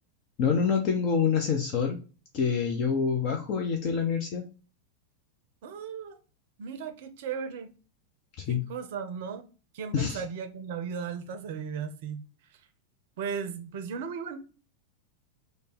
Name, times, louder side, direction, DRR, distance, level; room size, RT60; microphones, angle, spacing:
voice 1, 0.4-2.0 2.3-4.5 8.4-8.6 9.9-10.2, left 6 dB, 40° left, 0.5 m, -26 dB
voice 2, 5.6-6.2 6.6-7.7 8.5-9.5 9.7-12.3 12.5-12.6 13.2-14.4, right 6 dB, 50° right, 0.5 m, -36 dB
3.3 x 2.1 x 4.0 m
figure-of-eight pair, 90°, 0 cm